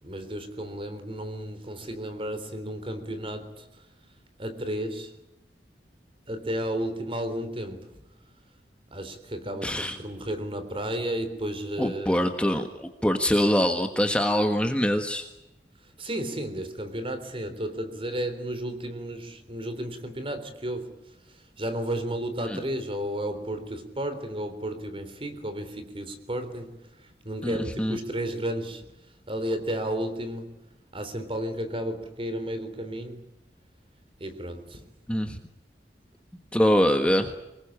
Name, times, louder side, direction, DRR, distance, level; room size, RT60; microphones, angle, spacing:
voice 1, 0.0-3.7 4.4-5.1 6.3-8.0 8.9-12.2 16.0-21.0 21.3-28.9 29.3-30.5 30.9-33.3 34.2-34.9, right 1 dB, 30° right, 3.7 m, -33 dB
voice 2, 9.6-10.0 11.8-15.2 22.5-22.6 27.4-28.0 35.1-35.4 36.5-37.3, equal, 5° left, 1.4 m, -24 dB
25.0 x 21.0 x 8.8 m
head